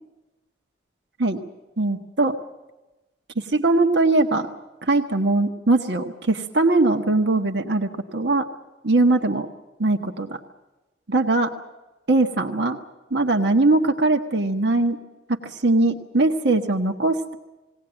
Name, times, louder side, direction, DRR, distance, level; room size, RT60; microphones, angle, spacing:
voice 1, 1.8-2.4 3.5-4.5 4.8-8.4 8.8-9.5 9.8-10.4 11.1-11.5 12.1-12.8 13.1-15.0 15.3-17.4, right 2 dB, 65° right, 4 dB, 1.3 m, -21 dB
20.5 x 18.0 x 8.9 m, 1.1 s
head